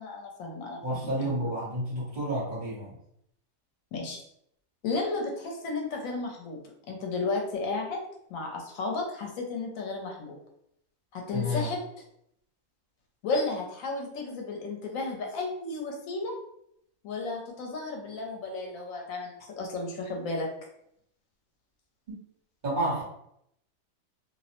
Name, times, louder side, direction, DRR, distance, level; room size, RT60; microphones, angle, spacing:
voice 1, 0.0-1.3 3.9-4.2 4.8-6.6 6.9-8.0 8.3-10.4 11.1-11.8 13.2-16.4 17.0-20.5, left 3 dB, 80° left, 1 dB, 1.0 m, -33 dB
voice 2, 0.8-2.9 11.3-11.7 22.1-22.2 22.6-23.0, equal, 40° right, -9 dB, 1.1 m, -30 dB
2.5 x 2.0 x 2.8 m, 0.74 s
omnidirectional pair, 1.4 m